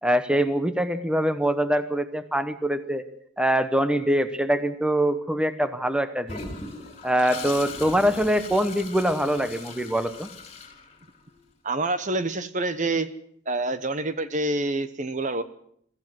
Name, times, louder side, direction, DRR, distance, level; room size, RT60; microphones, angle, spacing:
voice 1, 0.0-3.0 3.4-6.5 7.0-10.3, equal, 5° right, 10 dB, 1.0 m, -24 dB
Toilet flush, 6.3-11.3, left 4 dB, 30° left, 4.2 m, -39 dB
voice 2, 11.6-13.1 13.5-15.4, right 2 dB, 35° right, 12 dB, 1.0 m, -27 dB
23.0 x 14.5 x 7.9 m, 0.67 s
head